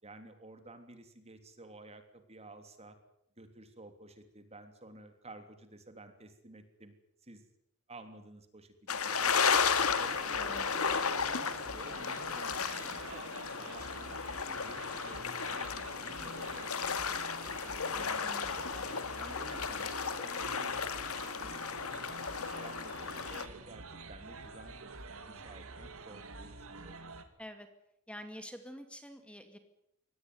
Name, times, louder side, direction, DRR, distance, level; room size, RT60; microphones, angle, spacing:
voice 1, 0.0-3.0 3.4-6.9 7.2-7.5 7.9-9.4 9.7-14.2 14.5-18.6 19.2-22.0 22.4-27.0, right 2 dB, 30° right, 7 dB, 3.2 m, -53 dB
sound 1, 8.9-23.5, left 6 dB, 75° left, 2.1 m, -34 dB
sound 2, 9.2-27.2, right 3 dB, 65° right, 2.7 m, -48 dB
voice 2, 10.3-10.9 18.0-18.9 27.4-27.7 28.1-29.6, equal, 5° left, 8 dB, 2.3 m, -48 dB
24.0 x 18.0 x 9.6 m, 0.77 s
head